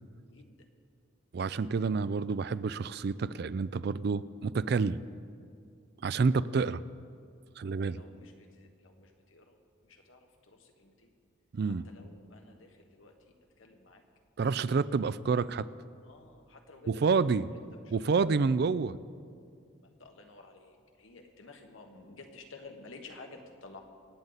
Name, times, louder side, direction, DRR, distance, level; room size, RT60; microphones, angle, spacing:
voice 1, 0.3-0.7 7.6-9.6 9.8-11.1 11.6-14.0 16.0-17.6 17.8-18.7 19.8-23.8, left 3 dB, 90° left, 3 dB, 1.5 m, -53 dB
voice 2, 1.3-5.0 6.0-6.8 7.6-8.0 11.5-11.8 14.4-15.7 16.9-17.5 17.9-19.0, right 4 dB, 55° right, 17 dB, 0.4 m, -28 dB
25.5 x 9.0 x 4.1 m, 2.3 s
head